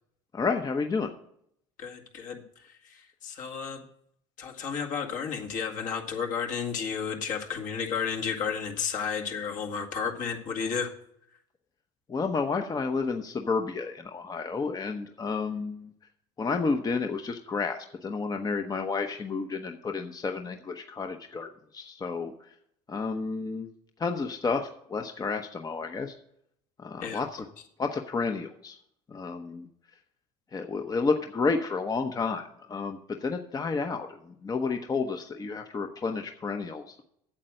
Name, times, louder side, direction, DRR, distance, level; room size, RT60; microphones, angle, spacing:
voice 1, 0.3-1.1 12.1-15.9 16.4-22.5 22.9-23.7 24.0-26.1 26.8-27.5 27.8-28.8 29.1-29.7 30.5-37.0, left 4 dB, 25° left, 5 dB, 0.9 m, -31 dB
voice 2, 1.8-3.8 4.4-10.9 27.0-27.2, left 6 dB, 60° left, 1 dB, 2.0 m, -32 dB
8.7 x 7.6 x 6.5 m, 0.70 s
supercardioid pair, 90°, 15 cm